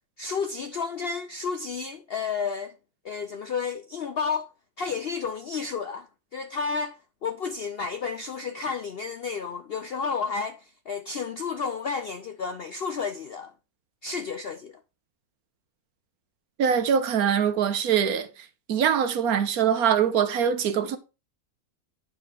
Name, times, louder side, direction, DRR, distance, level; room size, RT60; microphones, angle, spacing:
voice 1, 0.2-2.7 3.0-4.5 4.8-6.1 6.3-7.0 7.2-13.5 14.0-14.8, left 5 dB, 65° left, 0.6 m, -31 dB
voice 2, 16.6-18.3 18.7-21.0, right 8 dB, 70° right, 1.3 m, -23 dB
9.5 x 3.7 x 6.5 m
omnidirectional pair, 1.6 m